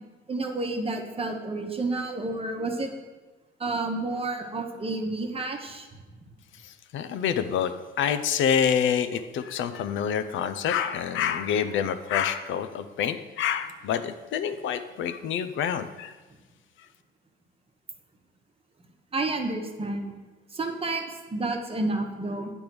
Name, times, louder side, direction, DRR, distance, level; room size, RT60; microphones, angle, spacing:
voice 1, 0.3-2.9 3.6-5.9 19.1-20.1 20.5-22.5, right 2 dB, 30° right, 4 dB, 1.0 m, -30 dB
voice 2, 6.6-16.2, left 8 dB, 75° left, 10 dB, 0.5 m, -27 dB
8.5 x 3.5 x 6.1 m, 1.3 s
cardioid pair, 90°, 20 cm